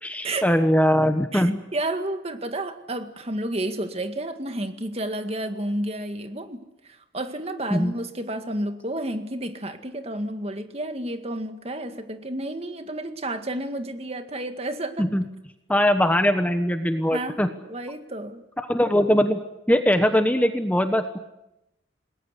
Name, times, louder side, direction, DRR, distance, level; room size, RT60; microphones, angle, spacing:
voice 1, 0.0-1.6 7.7-7.9 15.0-15.2 15.7-17.5 18.6-19.4 19.7-21.2, equal, 10° left, 7 dB, 1.2 m, -21 dB
voice 2, 1.3-6.6 6.9-15.1 17.1-18.4, right 1 dB, 35° right, 7 dB, 2.0 m, -31 dB
28.0 x 20.0 x 8.3 m, 0.91 s
head